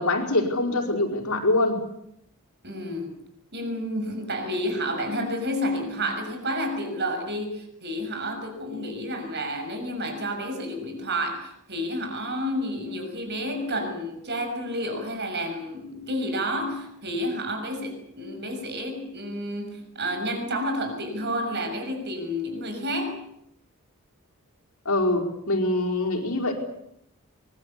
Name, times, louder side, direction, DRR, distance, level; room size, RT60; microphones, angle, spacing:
voice 1, 0.0-1.8 24.9-26.5, left 2 dB, 75° left, 3 dB, 5.1 m, -24 dB
voice 2, 2.6-3.1 3.5-23.2, equal, 50° right, 6 dB, 6.3 m, -30 dB
24.0 x 21.0 x 8.5 m, 0.74 s
head